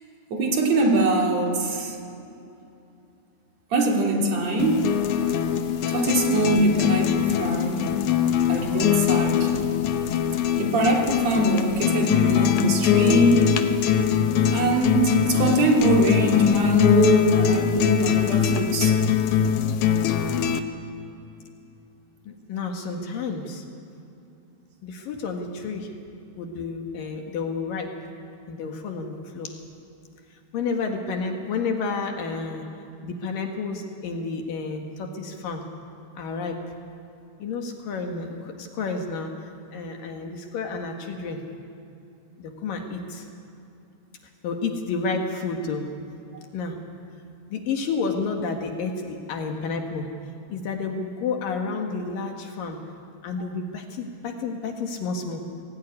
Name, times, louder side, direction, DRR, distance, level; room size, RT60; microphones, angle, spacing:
voice 1, 0.3-2.0 3.7-5.0 5.9-8.0 8.5-9.6 10.6-13.5 14.5-19.0, right 1 dB, 45° right, 1 dB, 3.4 m, -22 dB
sound 1, 4.6-20.6, left 9 dB, 85° left, 1.6 m, -22 dB
voice 2, 22.3-23.6 24.8-25.9 26.4-28.0 28.5-29.6 30.5-32.7 33.0-35.7 36.2-36.6 37.4-41.4 42.4-43.3 44.4-45.9 46.5-46.8 47.5-50.1 50.5-52.8 53.2-55.6, left 4 dB, 60° left, 3 dB, 2.9 m, -30 dB
22.5 x 17.0 x 9.7 m, 2.8 s
omnidirectional pair, 4.9 m